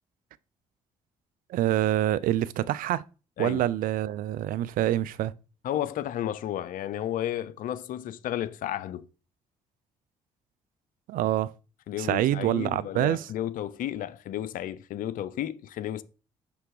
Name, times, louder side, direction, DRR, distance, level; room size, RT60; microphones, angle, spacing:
voice 1, 1.5-3.0 3.4-5.3 11.1-11.5 12.0-13.3, right 13 dB, 65° right, 0.4 m, -26 dB
voice 2, 5.6-9.1 11.9-16.0, left 11 dB, 65° left, 0.6 m, -32 dB
6.2 x 3.3 x 4.8 m
hypercardioid pair, 50°, 15 cm